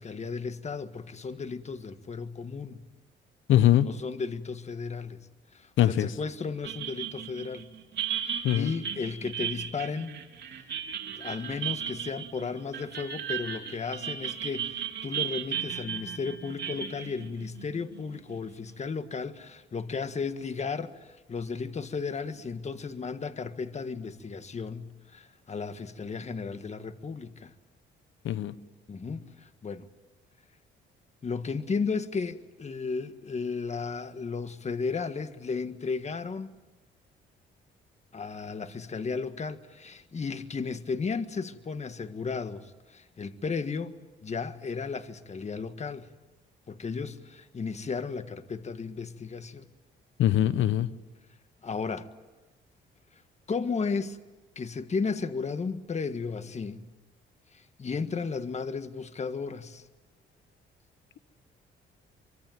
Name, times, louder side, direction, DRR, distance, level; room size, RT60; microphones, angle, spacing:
voice 1, 0.0-2.8 3.7-5.3 5.5-7.7 8.2-10.2 11.2-27.5 28.9-29.9 31.2-36.5 38.1-43.9 44.2-46.1 46.7-49.6 51.6-52.1 53.5-54.2 54.5-56.9 57.5-59.8, left 5 dB, 35° left, 1.6 m, -34 dB
voice 2, 3.5-3.9 5.8-6.1 8.4-8.7 28.2-28.5 50.2-50.9, left 12 dB, 80° left, 1.2 m, -22 dB
sound 1, 6.6-18.4, right 9 dB, 60° right, 3.7 m, -35 dB
25.0 x 24.5 x 9.3 m
cardioid pair, 90°, 20 cm